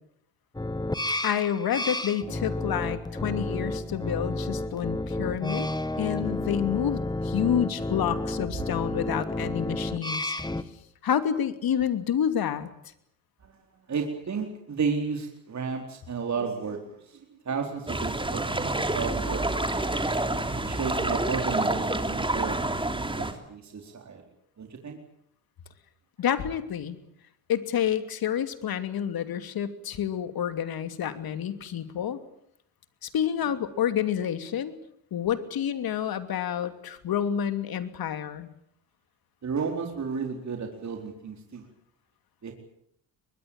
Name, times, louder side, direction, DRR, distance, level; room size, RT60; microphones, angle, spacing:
sound 1, 0.5-10.6, left 2 dB, 10° left, 1.9 m, -31 dB
voice 1, 1.2-5.7 6.0-10.3 11.0-12.7 26.2-27.0 27.5-32.2 33.0-34.7 35.1-38.5, left 9 dB, 60° left, 10 dB, 2.9 m, -29 dB
voice 2, 13.9-19.8 20.6-22.6 23.1-24.2 24.6-25.0 39.4-41.7 42.4-42.5, right 5 dB, 40° right, 3 dB, 4.3 m, -33 dB
sound 2, 17.9-23.3, right 2 dB, 10° right, 3.4 m, -28 dB
23.5 x 21.0 x 9.0 m, 0.72 s
supercardioid pair, 70°, 41 cm